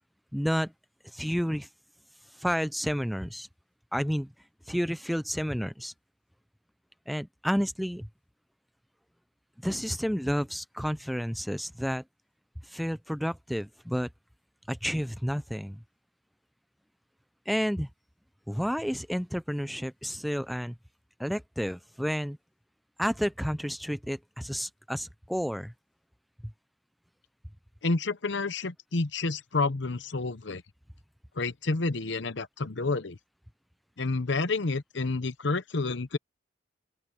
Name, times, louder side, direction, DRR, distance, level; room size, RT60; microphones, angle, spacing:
voice 1, 0.3-0.7 1.0-1.7 2.3-3.5 3.9-4.3 4.7-5.9 7.1-8.1 9.6-12.0 12.6-14.1 14.7-15.8 17.5-17.9 18.5-20.7 21.2-22.4 23.0-25.7, equal, ahead, 0.4 m, -30 dB
voice 2, 27.8-30.6 31.4-33.2 34.0-36.2, left 3 dB, 65° left, 0.9 m, -29 dB
open air
head